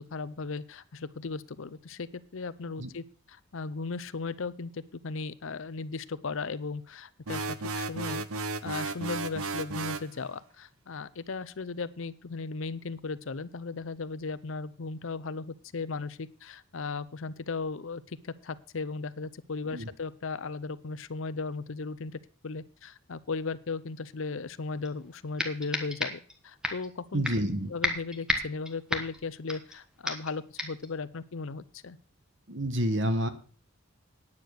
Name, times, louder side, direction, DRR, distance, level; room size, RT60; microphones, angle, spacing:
voice 1, 0.0-27.3 27.7-32.0, left 4 dB, 65° left, 16 dB, 0.6 m, -37 dB
sound 1, 7.3-10.1, right 3 dB, 85° right, 0.8 m, -34 dB
sound 2, 24.8-24.9 25.4-26.3 26.6-26.9 27.2-27.5 27.8-29.8 30.1-30.3 30.6-30.9, left 1 dB, 5° right, 1.3 m, -32 dB
voice 2, 27.1-27.7 32.5-33.3, equal, 55° right, 10 dB, 1.3 m, -28 dB
9.7 x 8.7 x 6.4 m, 0.41 s
head